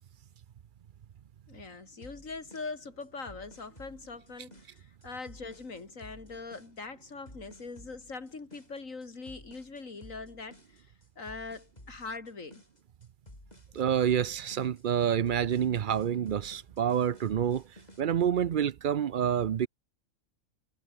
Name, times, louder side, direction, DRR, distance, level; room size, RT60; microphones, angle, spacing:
voice 1, 1.5-12.6, left 4 dB, 70° left, 3.4 m, -42 dB
sound 1, 2.0-18.0, left 1 dB, 30° left, 7.8 m, -54 dB
voice 2, 13.7-17.6 18.0-19.7, right 9 dB, 55° right, 0.6 m, -28 dB
omnidirectional pair, 1.4 m